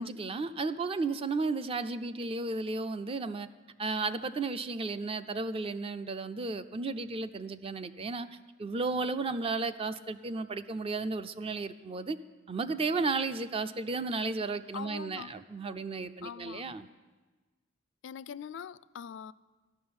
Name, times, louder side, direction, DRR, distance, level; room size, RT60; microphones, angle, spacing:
voice 1, 0.0-3.5 3.8-8.3 8.6-12.2 12.5-16.9, right 3 dB, 30° right, 0.4 m, -33 dB
voice 2, 14.7-15.3 16.2-16.7 18.0-19.3, left 7 dB, 65° left, 0.3 m, -43 dB
13.0 x 6.2 x 9.5 m
head